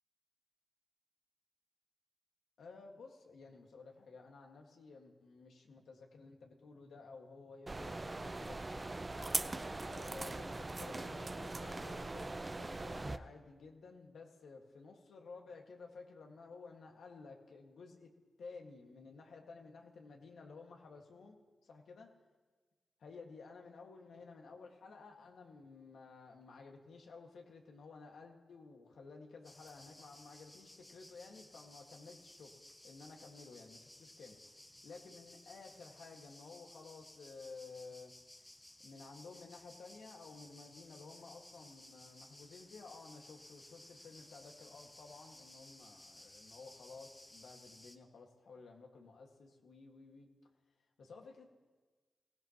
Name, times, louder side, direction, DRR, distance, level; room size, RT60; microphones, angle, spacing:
voice 1, 2.6-8.6 9.1-18.1 18.4-21.4 21.7-22.1 23.0-32.5 32.8-34.6 34.8-38.1 38.8-50.3 51.0-51.5, left 4 dB, 85° left, 1 dB, 1.9 m, -54 dB
sound 1, 7.7-13.2, right 2 dB, 30° right, 0.6 m, -41 dB
sound 2, 29.4-48.0, left 1 dB, 15° left, 1.1 m, -58 dB
22.5 x 16.5 x 3.0 m, 1.4 s
cardioid pair, 75°, 0 cm